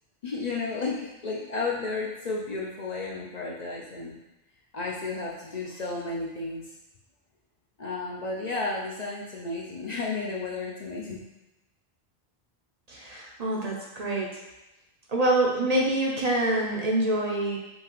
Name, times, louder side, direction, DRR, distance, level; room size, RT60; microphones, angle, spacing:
voice 1, 0.2-4.2 4.7-6.6 7.8-11.2, left 3 dB, 50° left, -3 dB, 0.6 m, -32 dB
voice 2, 12.9-14.4 15.1-17.6, right 1 dB, 45° right, -2 dB, 0.6 m, -26 dB
5.4 x 2.8 x 3.0 m, 0.99 s
omnidirectional pair, 1.0 m